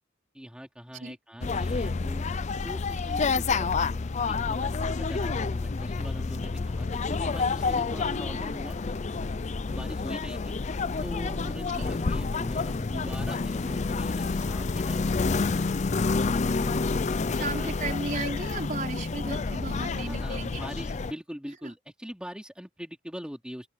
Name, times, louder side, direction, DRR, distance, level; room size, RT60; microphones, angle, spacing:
voice 1, 0.3-2.3 2.6-3.7 4.3-8.8 9.7-10.5 11.0-15.9 16.6-17.7 18.0-18.1 20.0-23.7, equal, 5° right, 3.8 m, -42 dB
sound 1, 1.4-21.1, left 4 dB, 35° left, 0.5 m, -29 dB
voice 2, 17.3-20.6 21.6-21.7, right 3 dB, 40° right, 4.5 m, -35 dB
open air
head